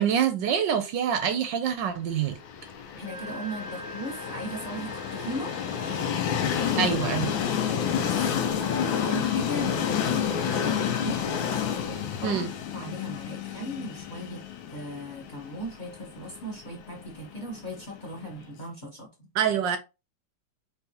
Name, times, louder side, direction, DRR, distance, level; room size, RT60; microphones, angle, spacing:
voice 1, 0.0-2.4 6.8-7.3 12.2-12.5 19.3-19.8, right 8 dB, 75° right, 1.2 m, -25 dB
Train, 2.4-18.3, left 8 dB, 80° left, 1.4 m, -29 dB
voice 2, 2.9-5.5 7.7-8.3 9.0-11.2 11.8-12.5 12.7-14.4 14.7-19.1, equal, 30° left, 1.0 m, -37 dB
Wind instrument woodwind instrument, 3.0-7.5, equal, 50° left, 1.3 m, -44 dB
4.6 x 3.5 x 2.8 m
omnidirectional pair, 2.1 m